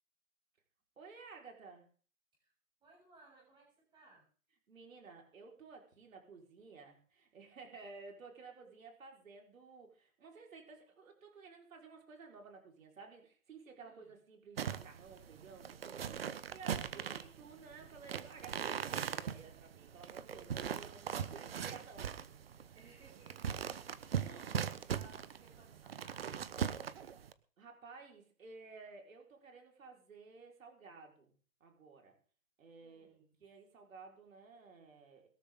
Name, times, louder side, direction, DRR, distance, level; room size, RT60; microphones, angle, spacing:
voice 1, 1.0-1.9 4.7-22.1 27.6-31.3 31.6-32.1 32.6-35.3, right 4 dB, 60° right, 1 dB, 4.9 m, -54 dB
voice 2, 2.8-4.2 13.8-14.1 22.7-24.6 24.9-26.8 32.8-33.3, right 3 dB, 10° right, -3 dB, 7.3 m, -63 dB
sound 1, 14.6-27.3, right 8 dB, 40° right, 1.0 m, -40 dB
21.5 x 13.0 x 3.8 m, 0.42 s
hypercardioid pair, 165°, 45 cm